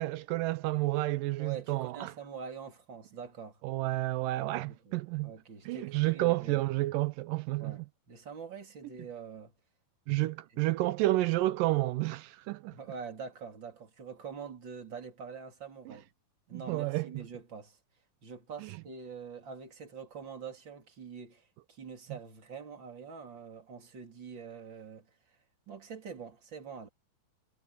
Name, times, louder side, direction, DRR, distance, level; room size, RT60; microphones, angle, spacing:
voice 1, 0.0-2.1 3.6-5.3 5.7-7.8 10.1-12.8 15.9-16.0 16.5-17.1, right 18 dB, 80° right, 2.1 m, -30 dB
voice 2, 1.4-3.6 4.4-5.0 5.2-6.6 7.6-9.5 12.7-16.1 16.5-17.8 18.2-25.4 25.7-26.9, right 6 dB, 30° right, 3.6 m, -45 dB
omnidirectional pair, 4.2 m